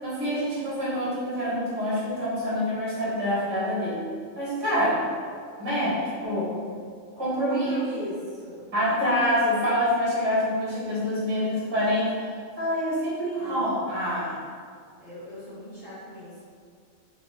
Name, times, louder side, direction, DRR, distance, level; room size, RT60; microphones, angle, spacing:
voice 1, 0.0-4.0 4.4-5.0 5.6-6.6 7.2-7.8 8.7-12.1 12.6-14.4, equal, 20° right, -9 dB, 1.2 m, -26 dB
voice 2, 7.5-9.4 13.3-13.6 15.0-16.5, left 1 dB, 25° left, -12 dB, 1.7 m, -39 dB
4.1 x 3.1 x 3.5 m, 2.1 s
omnidirectional pair, 1.4 m